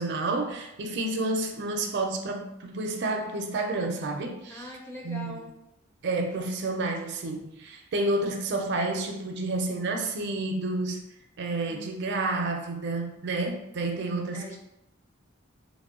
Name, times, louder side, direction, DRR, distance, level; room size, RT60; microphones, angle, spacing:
voice 1, 0.0-4.7 5.0-5.4 6.0-11.0 11.4-14.6, right 2 dB, 55° right, 3 dB, 0.4 m, -30 dB
voice 2, 4.5-5.5 11.7-11.9 14.3-14.6, left 2 dB, 10° left, -1 dB, 0.5 m, -41 dB
3.5 x 2.1 x 3.6 m, 0.84 s
head